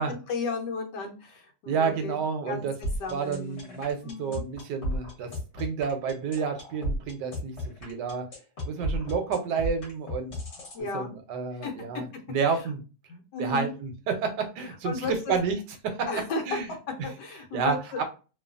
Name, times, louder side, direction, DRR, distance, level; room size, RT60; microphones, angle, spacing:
voice 1, 0.0-2.2 2.5-2.7 3.0-3.8 4.0-4.4 10.7-11.1 11.6-12.0 13.1-13.7 14.8-15.3 16.1-16.6 17.0-18.0, left 3 dB, 75° left, 2 dB, 1.4 m, -34 dB
voice 2, 1.7-2.7 3.1-8.3 8.6-10.4 10.9-12.8 13.4-16.1 16.5-16.7 17.0-17.1 17.5-18.0, right 5 dB, 75° right, 6 dB, 1.2 m, -30 dB
sound 1, 2.8-10.8, equal, 40° left, 1.4 m, -33 dB
3.1 x 2.3 x 2.4 m, 0.32 s
omnidirectional pair, 1.9 m